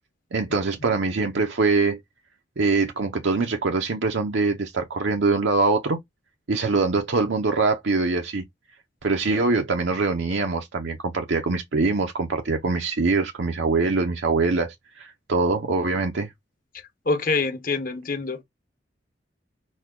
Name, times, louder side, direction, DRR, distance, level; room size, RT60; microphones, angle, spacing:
voice 1, 0.3-2.0 2.6-6.0 6.5-8.4 9.0-16.3, right 3 dB, 80° right, 0.7 m, -23 dB
voice 2, 17.1-18.4, left 3 dB, 50° left, 1.1 m, -25 dB
6.2 x 2.3 x 3.7 m
head